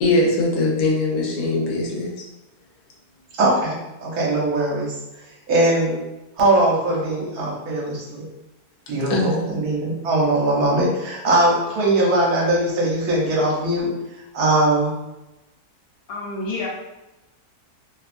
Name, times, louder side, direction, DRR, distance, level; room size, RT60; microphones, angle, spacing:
voice 1, 0.0-2.1 9.1-9.4, left 2 dB, 80° left, -3 dB, 1.2 m, -21 dB
voice 2, 3.4-4.9 5.5-6.0 6.4-8.3 8.9-13.9 14.3-14.9, right 1 dB, 70° right, -4 dB, 1.2 m, -20 dB
voice 3, 16.1-16.7, left 3 dB, 60° left, -4 dB, 0.6 m, -28 dB
3.0 x 2.3 x 2.4 m, 0.97 s
omnidirectional pair, 1.7 m